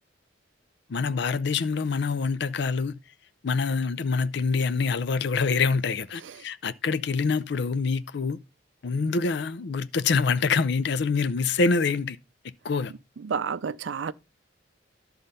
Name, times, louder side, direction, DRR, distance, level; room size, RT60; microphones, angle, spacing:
voice 1, 0.9-2.9 3.4-8.4 8.8-12.2 12.6-12.9, left 4 dB, 60° left, 0.5 m, -25 dB
voice 2, 13.2-14.1, right 6 dB, 65° right, 0.4 m, -30 dB
11.5 x 3.9 x 5.5 m
head